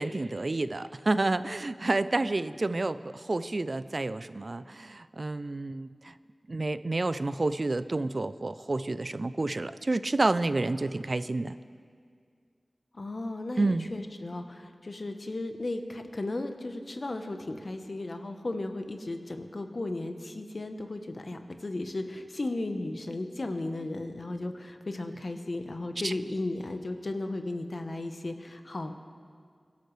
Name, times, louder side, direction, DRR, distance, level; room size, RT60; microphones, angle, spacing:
voice 1, 0.0-6.1 6.5-11.5 13.6-13.9 26.0-26.1, right 2 dB, 55° right, 14 dB, 0.4 m, -29 dB
voice 2, 12.9-28.9, left 2 dB, 60° left, 6 dB, 1.0 m, -35 dB
23.0 x 12.5 x 3.3 m, 2.1 s
wide cardioid pair, 50°, 0 cm